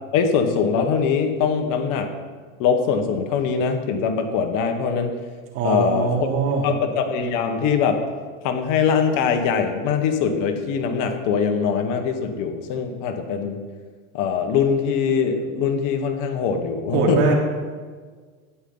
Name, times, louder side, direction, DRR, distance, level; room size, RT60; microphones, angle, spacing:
voice 1, 0.1-2.1 2.6-5.1 5.6-6.3 6.6-8.0 8.4-13.6 14.1-17.2, left 6 dB, 50° left, 6 dB, 1.6 m, -22 dB
voice 2, 5.5-6.7 16.9-17.3, right 4 dB, 55° right, -1 dB, 3.4 m, -21 dB
13.0 x 10.5 x 4.0 m, 1.5 s
supercardioid pair, 115°, 40 cm